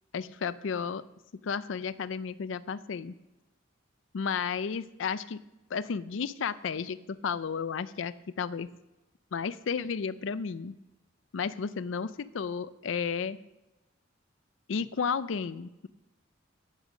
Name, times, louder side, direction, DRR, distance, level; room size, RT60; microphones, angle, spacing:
voice 1, 0.1-1.0 1.4-3.1 4.1-5.4 5.7-8.7 9.3-10.7 11.3-13.4 14.7-15.9, left 6 dB, 75° left, 15 dB, 0.4 m, -33 dB
11.0 x 9.8 x 6.4 m, 0.99 s
head